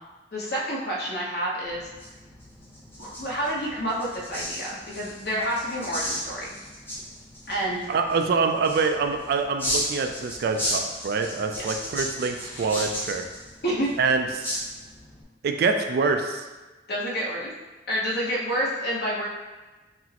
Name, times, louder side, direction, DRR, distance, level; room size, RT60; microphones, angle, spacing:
voice 1, 0.3-1.9 3.0-6.5 7.5-7.8 11.6-11.7 13.6-13.9 16.9-17.5 17.9-19.3, equal, 60° left, -4 dB, 1.0 m, -28 dB
sound 1, 1.6-15.2, equal, 10° left, 0.8 m, -35 dB
voice 2, 7.9-13.2 14.0-14.5 15.4-16.4, right 4 dB, 60° right, 5 dB, 0.3 m, -25 dB
6.0 x 2.0 x 2.9 m, 1.2 s
head